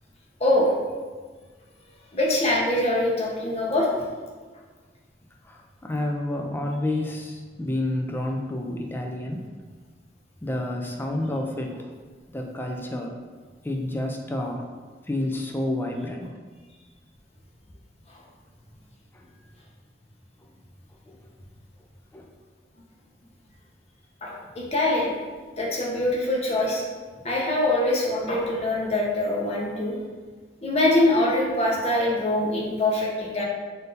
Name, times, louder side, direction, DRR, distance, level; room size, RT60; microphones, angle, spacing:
voice 1, 0.4-0.7 2.1-3.9 24.2-25.1 25.6-26.8 27.2-30.0 30.6-33.4, left 1 dB, 35° left, -3 dB, 0.8 m, -23 dB
voice 2, 5.4-9.5 10.4-11.9 12.3-13.1 13.6-14.7 15.1-16.3 19.1-19.3 21.1-21.2 22.1-22.2, left 1 dB, 10° left, 1 dB, 0.4 m, -29 dB
3.8 x 2.7 x 3.9 m, 1.4 s
head